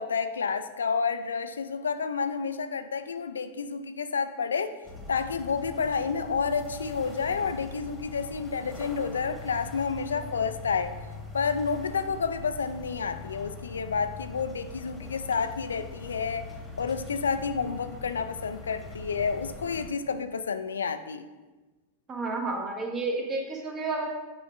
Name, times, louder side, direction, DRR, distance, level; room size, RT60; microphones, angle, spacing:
voice 1, 0.0-4.7 5.1-11.0 11.3-16.5 16.8-21.2, left 5 dB, 70° left, 10 dB, 0.3 m, -30 dB
sound 1, 4.8-19.9, left 4 dB, ahead, 1.6 m, -42 dB
voice 2, 22.1-24.1, right 3 dB, 25° right, 1 dB, 1.2 m, -31 dB
8.5 x 5.1 x 2.5 m, 1.2 s
figure-of-eight pair, 90°, 0 cm